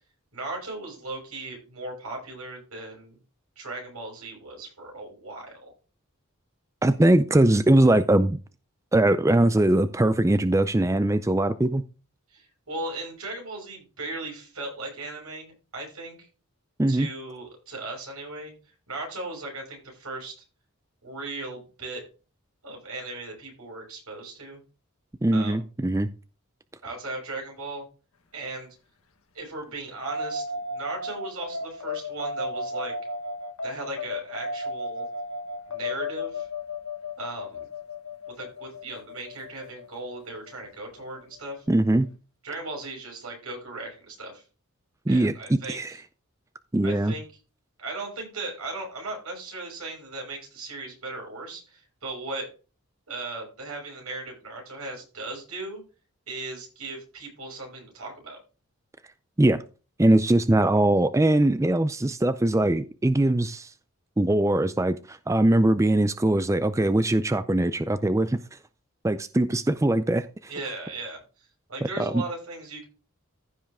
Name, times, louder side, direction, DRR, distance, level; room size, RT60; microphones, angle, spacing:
voice 1, 0.3-3.2 3.6-5.7 12.3-16.3 16.9-18.5 18.9-20.4 21.0-22.0 22.6-24.6 25.3-25.6 26.8-27.9 28.3-28.8 29.3-32.9 33.6-35.1 35.7-36.5 37.2-37.7 38.3-41.7 42.4-44.4 45.1-46.0 46.8-47.2 47.8-52.5 53.1-55.8 56.3-58.4 70.5-72.8, right 2 dB, 80° right, 6.2 m, -37 dB
voice 2, 6.8-8.4 8.9-11.8 16.8-17.1 25.2-26.1 41.7-42.1 45.1-45.9 46.7-47.1 59.4-59.6 60.0-63.7 64.2-68.6 69.0-70.5 72.0-72.2, right 1 dB, 15° right, 0.4 m, -21 dB
sound 1, 30.1-40.8, left 2 dB, 75° left, 1.4 m, -34 dB
15.0 x 5.6 x 3.5 m
head